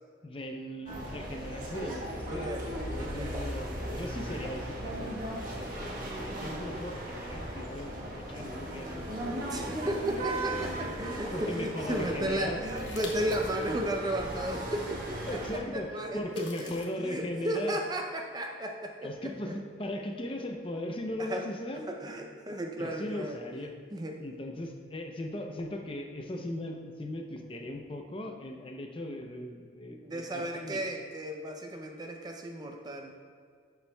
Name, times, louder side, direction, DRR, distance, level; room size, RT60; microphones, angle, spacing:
voice 1, 0.2-2.5 2.9-12.6 15.3-17.8 19.0-21.8 22.8-23.7 24.2-30.8, left 1 dB, 25° left, 3 dB, 0.6 m, -38 dB
sound 1, 0.9-15.6, right 1 dB, 45° right, 1.2 m, -37 dB
voice 2, 2.3-2.6 3.0-3.3 9.5-15.4 15.7-19.1 21.2-21.4 21.9-23.3 23.9-24.1 30.0-33.1, right 1 dB, 20° right, 3 dB, 0.5 m, -34 dB
sound 2, 12.7-13.6 14.1-14.2 16.2-16.9, left 4 dB, 65° left, 1.2 m, -45 dB
11.5 x 7.1 x 2.3 m, 2.1 s
head